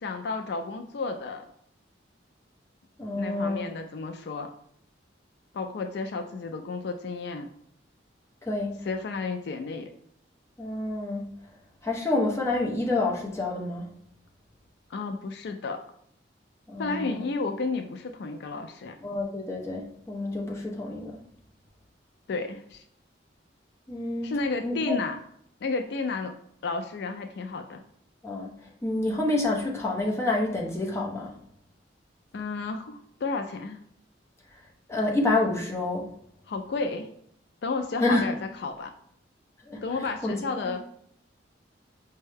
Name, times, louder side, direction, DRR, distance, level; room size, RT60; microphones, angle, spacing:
voice 1, 0.0-1.5 3.1-4.5 5.5-7.5 8.9-9.9 14.9-15.8 16.8-19.0 22.3-22.8 24.2-25.2 25.6-26.4 26.6-27.8 32.3-33.8 36.5-37.1 37.6-38.9 39.8-40.8, left 3 dB, 60° left, 5 dB, 0.3 m, -32 dB
voice 2, 3.0-3.7 8.4-8.8 10.6-11.3 11.8-13.8 16.7-17.2 19.0-21.2 23.9-24.3 24.6-25.0 28.2-28.5 28.8-31.3 34.9-36.1 38.0-38.2 39.6-39.8 40.2-40.4 40.6-40.7, left 2 dB, 15° left, -2 dB, 0.7 m, -28 dB
5.3 x 2.2 x 3.3 m, 0.67 s
head